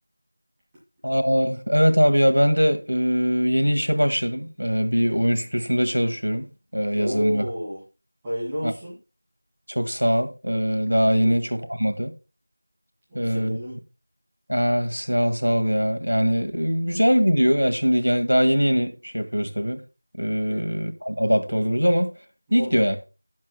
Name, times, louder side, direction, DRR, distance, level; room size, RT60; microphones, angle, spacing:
voice 1, 1.0-6.5 6.7-7.4 8.6-8.7 9.7-12.1 13.1-13.6 14.5-19.8 20.2-22.1 22.5-23.0, equal, 85° right, 1.8 m, -22 dB
voice 2, 7.0-7.8 8.2-9.0 11.2-11.3 13.1-13.8 20.5-20.6 22.5-23.0, equal, 10° right, 2.2 m, -30 dB
19.0 x 7.5 x 2.2 m
figure-of-eight pair, 175°, 0 cm